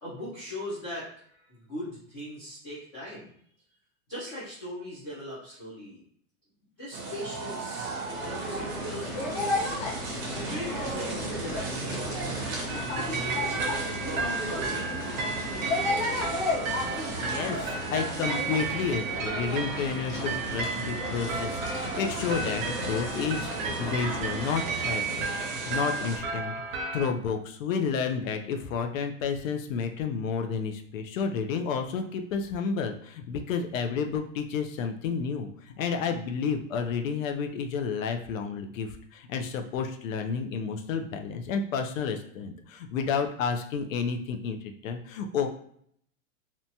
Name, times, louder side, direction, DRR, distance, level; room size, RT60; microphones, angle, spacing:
voice 1, 0.0-3.3 4.1-6.0 6.8-9.5 10.4-16.5, left 1 dB, 20° left, -10 dB, 0.4 m, -40 dB
sound 1, 6.9-26.2, right 3 dB, 35° right, 0.6 m, -37 dB
sound 2, 8.0-26.5, left 2 dB, 50° left, 1.0 m, -35 dB
sound 3, 12.7-27.1, right 4 dB, 75° right, 0.8 m, -34 dB
voice 2, 17.2-26.5 26.9-45.5, left 6 dB, 75° left, 5 dB, 0.5 m, -31 dB
2.8 x 2.2 x 2.6 m, 0.65 s
supercardioid pair, 175°, 40 cm